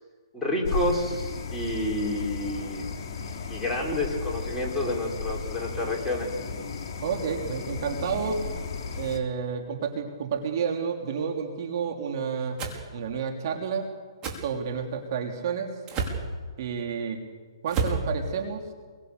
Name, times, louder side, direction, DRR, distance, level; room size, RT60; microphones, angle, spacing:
voice 1, 0.3-2.8 3.5-6.4, left 1 dB, 5° left, -4 dB, 5.2 m, -29 dB
sound 1, 0.6-9.2, left 5 dB, 35° left, 3.5 m, -34 dB
voice 2, 7.0-8.4 9.0-12.6 12.9-13.9 14.4-15.7 16.6-17.2 17.6-18.6, right 6 dB, 50° right, 3 dB, 3.5 m, -30 dB
sound 2, 12.6-12.8 14.2-14.4 15.9-16.2 17.7-18.0, right 4 dB, 25° right, 4.4 m, -28 dB
27.5 x 23.0 x 6.9 m, 1.5 s
hypercardioid pair, 145°, 3 cm